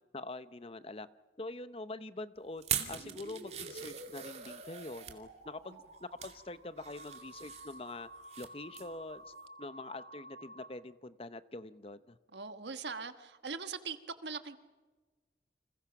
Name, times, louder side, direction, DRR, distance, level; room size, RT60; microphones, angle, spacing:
voice 1, 0.1-1.1 1.4-5.7 6.0-8.1 8.4-9.3 9.6-12.2, left 2 dB, 30° left, 14 dB, 0.7 m, -44 dB
sound 1, 2.6-5.2 5.8-6.4 6.8-8.5 8.7-9.0 9.4-9.5, right 9 dB, 35° right, 2.4 m, -41 dB
sound 2, 2.8-10.7, right 1 dB, 50° right, 4.7 m, -51 dB
voice 2, 12.3-14.6, right 5 dB, 70° right, 10 dB, 1.4 m, -41 dB
29.5 x 26.5 x 5.9 m, 1.3 s
head